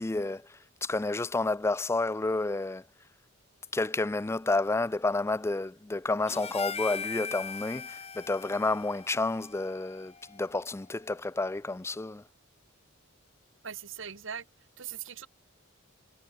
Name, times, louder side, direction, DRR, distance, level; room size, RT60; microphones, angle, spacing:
voice 1, 0.0-2.8 3.7-12.2, left 2 dB, 15° left, 0.4 m, -30 dB
Harmonica, 6.3-10.7, left 6 dB, 30° left, 2.9 m, -40 dB
voice 2, 13.6-14.5 14.8-15.3, right 8 dB, 65° right, 1.8 m, -40 dB
head